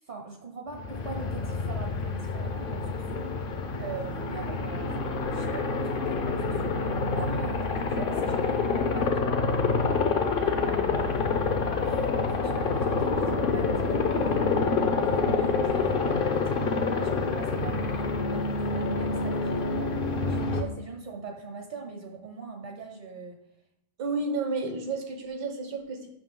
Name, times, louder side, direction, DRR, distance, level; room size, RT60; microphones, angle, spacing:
voice 1, 0.0-9.9 10.4-14.5 15.0-16.5 16.8-23.4, right 4 dB, 50° right, 3 dB, 0.6 m, -42 dB
Aircraft, 0.7-20.6, left 4 dB, 60° left, 0.5 m, -27 dB
voice 2, 24.0-26.1, right 3 dB, 90° right, 4 dB, 1.7 m, -31 dB
7.5 x 5.9 x 3.8 m, 0.81 s
omnidirectional pair, 1.8 m